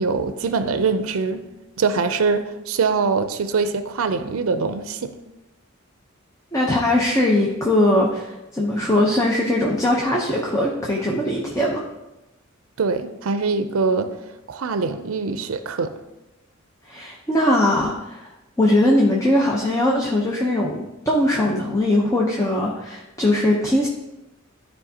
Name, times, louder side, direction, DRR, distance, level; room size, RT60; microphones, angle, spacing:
voice 1, 0.0-1.4 1.8-5.1 12.8-14.1 14.5-15.9, right 4 dB, 85° right, 10 dB, 0.5 m, -23 dB
voice 2, 6.5-11.8 16.9-18.3 18.6-23.9, left 1 dB, 15° left, -2 dB, 0.8 m, -20 dB
12.5 x 4.6 x 2.8 m, 0.98 s
head